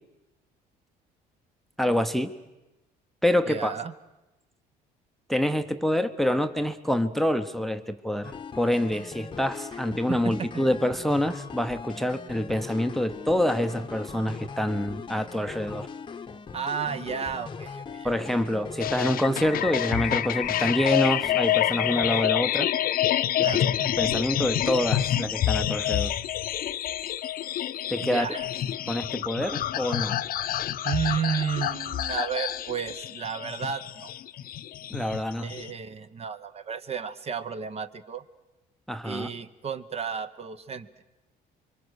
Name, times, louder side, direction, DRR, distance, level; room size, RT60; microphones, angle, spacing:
voice 1, 1.8-2.3 3.2-3.7 5.3-15.9 18.0-22.7 23.8-26.1 27.9-28.3 28.9-30.1 34.9-35.5 38.9-39.3, left 1 dB, ahead, 10 dB, 0.8 m, -26 dB
voice 2, 3.5-3.9 10.1-10.6 16.5-18.1 23.4-23.9 28.0-28.5 30.8-34.1 35.4-38.2 39.0-40.9, right 7 dB, 35° right, 12 dB, 1.0 m, -32 dB
sound 1, 8.2-22.2, left 5 dB, 30° left, 0.9 m, -40 dB
sound 2, 18.8-35.7, left 12 dB, 60° left, 0.7 m, -28 dB
25.5 x 23.5 x 6.4 m, 1.0 s
cardioid pair, 110°, 17 cm